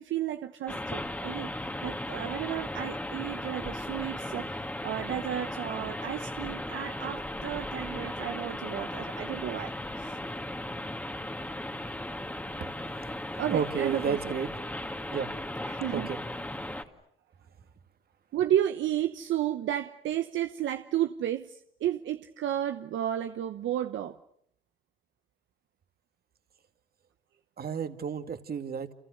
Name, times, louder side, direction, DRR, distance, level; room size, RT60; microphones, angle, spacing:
voice 1, 0.0-1.5 1.8-10.2 13.4-14.4 15.6-16.1 18.3-24.2, right 11 dB, 75° right, 1.0 m, -32 dB
sound 1, 0.7-16.8, left 1 dB, 10° left, 2.3 m, -36 dB
voice 2, 13.5-14.5 15.1-15.3 15.9-16.2 27.6-28.9, right 7 dB, 50° right, 2.3 m, -31 dB
30.0 x 28.5 x 6.6 m
cardioid pair, 90°, 20 cm